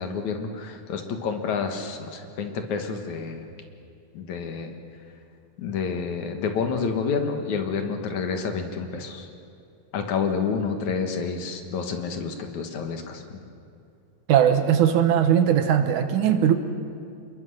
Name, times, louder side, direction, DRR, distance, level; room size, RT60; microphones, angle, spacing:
voice 1, 0.0-3.5 4.1-4.7 5.6-9.3 9.9-13.4, left 5 dB, 65° left, 5 dB, 2.7 m, -29 dB
voice 2, 14.3-16.5, right 9 dB, 70° right, 8 dB, 2.4 m, -19 dB
28.0 x 21.5 x 6.5 m, 2.4 s
omnidirectional pair, 3.8 m